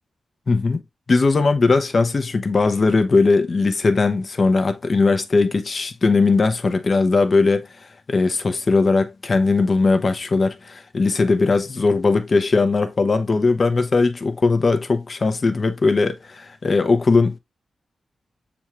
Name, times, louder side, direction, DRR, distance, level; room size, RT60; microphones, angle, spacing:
voice 1, 0.5-0.8 1.1-7.7 8.1-17.4, left 3 dB, 40° left, 0.7 m, -19 dB
7.0 x 2.4 x 3.0 m
wide cardioid pair, 110°, 0 cm